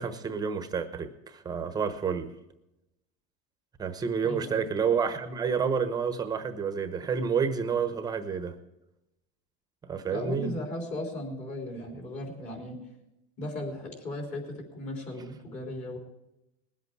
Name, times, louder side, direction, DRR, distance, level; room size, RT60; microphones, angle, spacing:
voice 1, 0.0-2.3 3.8-8.5 9.9-10.5, right 6 dB, 20° right, 9 dB, 1.0 m, -29 dB
voice 2, 4.2-4.6 10.1-12.8 13.4-16.0, left 1 dB, 35° left, 1 dB, 3.6 m, -37 dB
20.0 x 8.2 x 4.7 m, 0.89 s
supercardioid pair, 140°, 21 cm